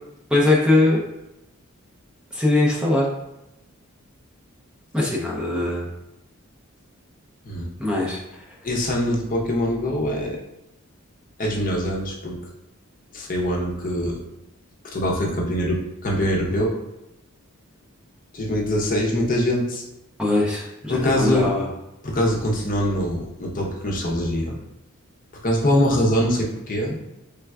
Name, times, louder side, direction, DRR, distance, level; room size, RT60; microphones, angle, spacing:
voice 1, 0.3-1.0 2.3-3.1 4.9-5.9 7.8-8.4 20.2-21.7, left 2 dB, 5° right, -4 dB, 0.6 m, -21 dB
voice 2, 8.6-10.4 11.4-12.4 13.1-14.2 14.9-16.8 18.3-19.8 20.9-21.5 22.0-24.6 25.4-27.0, equal, 40° left, -1 dB, 0.7 m, -23 dB
4.4 x 3.3 x 2.3 m, 0.91 s
head